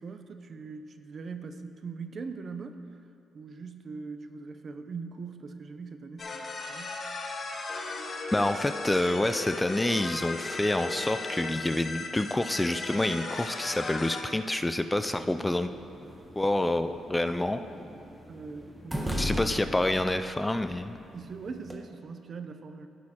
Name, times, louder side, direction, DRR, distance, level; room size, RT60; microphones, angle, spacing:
voice 1, 0.0-2.8 3.3-7.0 18.3-19.5 21.1-22.9, right 4 dB, 45° right, 8 dB, 0.5 m, -41 dB
sound 1, 6.2-14.2, left 3 dB, 45° left, 0.9 m, -36 dB
voice 2, 8.3-15.7 16.4-17.6 19.2-21.0, left 1 dB, 10° left, 9 dB, 0.3 m, -28 dB
sound 2, 15.1-21.8, equal, 10° right, 1.0 m, -39 dB
15.0 x 6.4 x 2.9 m, 2.6 s
cardioid pair, 90°, 0 cm